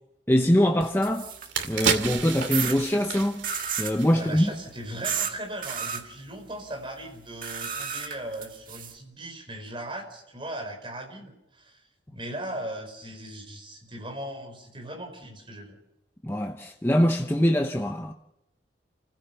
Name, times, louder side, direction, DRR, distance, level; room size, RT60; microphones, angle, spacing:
voice 1, 0.3-1.3 1.6-3.4 3.8-4.5 16.2-18.1, equal, 10° left, 0.8 m, -23 dB
Weird Spray Can, 0.8-1.9 2.5-2.8 3.4-4.0 5.0-5.3 5.6-6.0 7.4-8.9, right 7 dB, 45° right, 2.0 m, -32 dB
sound 1, 0.8-0.9 1.3-4.6 4.9-5.1, right 6 dB, 85° right, 2.5 m, -31 dB
voice 2, 4.1-11.8 12.1-15.8, right 1 dB, 25° right, 5.1 m, -38 dB
29.5 x 15.5 x 6.9 m
head